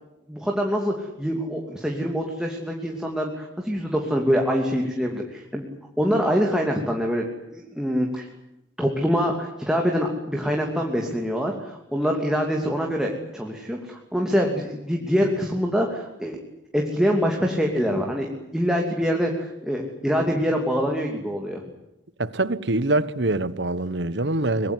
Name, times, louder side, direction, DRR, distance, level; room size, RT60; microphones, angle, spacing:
voice 1, 0.3-5.6 6.0-8.2 8.8-16.4 16.7-21.6, equal, 5° right, 2.9 m, -25 dB
voice 2, 22.2-24.7, right 2 dB, 70° right, 1.3 m, -24 dB
24.5 x 21.0 x 9.8 m
head